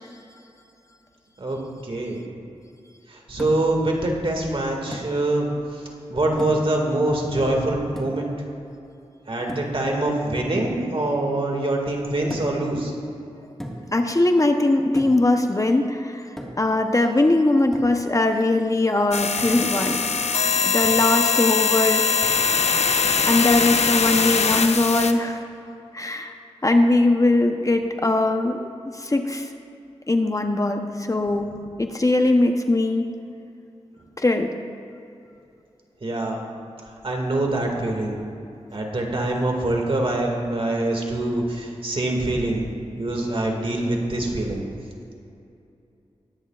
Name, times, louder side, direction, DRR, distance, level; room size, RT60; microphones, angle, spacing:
voice 1, 1.8-2.2 3.1-5.5 6.1-8.3 9.3-12.9 36.0-36.4 37.0-38.2 38.7-42.7 43.0-44.7, right 2 dB, 50° right, 0 dB, 2.0 m, -24 dB
sound 1, 3.4-3.8 4.9-5.2 6.4-6.8 8.0-8.3 9.5-9.8 12.3-12.7 13.6-14.0 14.9-15.3 16.4-16.8 17.7-18.0 19.4-19.6 20.8-21.2 22.2-22.5, equal, 5° left, 1.7 m, -36 dB
voice 2, 13.9-16.3 16.6-20.0 20.6-22.1 23.3-25.4 25.9-26.3 26.6-29.5 30.1-31.5 31.8-33.1 34.2-34.5, left 2 dB, 30° left, 5 dB, 0.8 m, -20 dB
sound 2, 19.1-25.1, left 5 dB, 75° left, 0.7 m, -21 dB
20.0 x 9.9 x 2.4 m, 2.6 s
cardioid pair, 60°, 11 cm